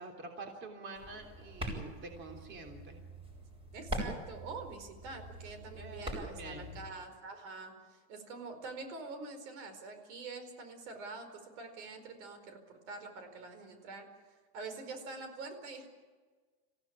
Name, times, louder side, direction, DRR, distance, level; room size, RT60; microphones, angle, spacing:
voice 1, 0.0-3.0 5.7-6.8, right 3 dB, 35° right, 3 dB, 3.4 m, -47 dB
sound 1, 1.0-6.9, equal, 15° right, 7.5 m, -43 dB
voice 2, 3.7-14.1 14.5-15.9, right 3 dB, 85° right, 8 dB, 4.8 m, -46 dB
26.5 x 16.0 x 8.8 m, 1.5 s
cardioid pair, 160°, 34 cm